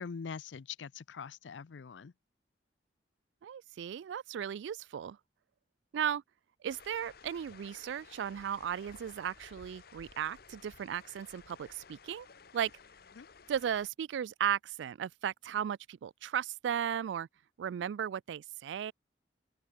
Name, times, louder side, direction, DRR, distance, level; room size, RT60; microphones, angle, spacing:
voice 1, 0.0-2.1 13.2-13.3, left 6 dB, 90° left, 0.5 m, -43 dB
voice 2, 3.4-5.2 5.9-6.2 6.6-12.3 12.5-12.7 13.5-17.3 17.6-18.9, right 9 dB, 80° right, 0.3 m, -36 dB
sound 1, 6.7-13.9, left 5 dB, 60° left, 1.2 m, -56 dB
open air
head